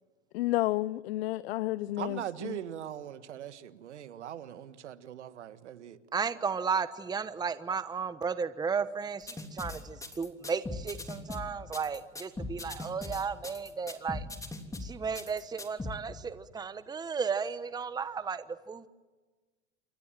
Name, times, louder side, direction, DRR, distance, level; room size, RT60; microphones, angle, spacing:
voice 1, 0.3-2.6, left 17 dB, 60° left, 0.7 m, -31 dB
voice 2, 2.0-6.0, right 10 dB, 80° right, 1.7 m, -41 dB
voice 3, 6.1-14.3 14.8-18.9, right 5 dB, 10° right, 1.0 m, -34 dB
sound 1, 9.3-15.9, left 2 dB, 10° left, 3.2 m, -39 dB
28.5 x 23.5 x 7.6 m
hypercardioid pair, 100°, 34 cm